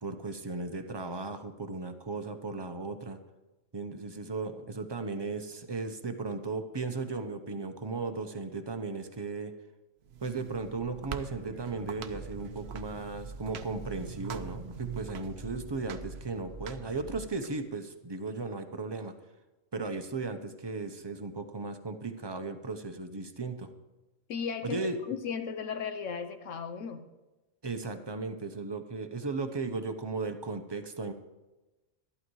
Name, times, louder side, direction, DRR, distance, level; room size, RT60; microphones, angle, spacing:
voice 1, 0.0-3.2 3.7-9.5 10.2-19.1 19.7-23.7 24.6-25.0 27.6-31.1, right 3 dB, 25° right, 7 dB, 0.7 m, -36 dB
sound 1, 10.0-17.5, right 8 dB, 60° right, 0.9 m, -44 dB
sound 2, 12.0-17.3, right 2 dB, 15° left, 1.1 m, -46 dB
voice 2, 24.3-24.8 25.1-27.0, left 6 dB, 80° left, 7 dB, 1.2 m, -35 dB
12.5 x 11.5 x 4.7 m, 1.1 s
omnidirectional pair, 1.3 m